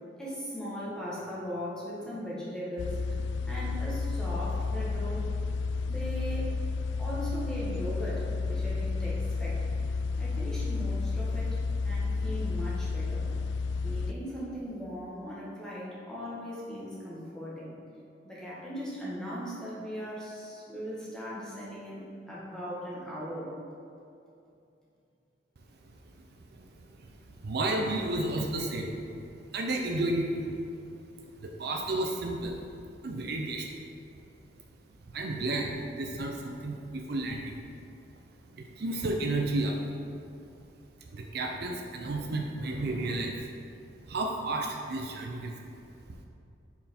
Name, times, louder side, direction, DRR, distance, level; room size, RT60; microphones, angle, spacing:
voice 1, 0.2-3.1 3.5-5.3 5.9-6.5 7.0-9.6 10.2-11.6 11.8-13.3 13.8-17.8 18.2-23.5, equal, 5° left, -8 dB, 1.5 m, -38 dB
sound 1, 2.8-14.1, left 4 dB, 75° left, 0.3 m, -31 dB
voice 2, 27.4-28.9 29.5-30.6 31.2-32.6 33.0-33.8 35.1-37.6 38.5-39.8 41.1-43.5 44.1-45.5 46.1-46.2, right 2 dB, 60° right, 1 dB, 0.5 m, -32 dB
5.6 x 4.5 x 4.2 m, 2.6 s
head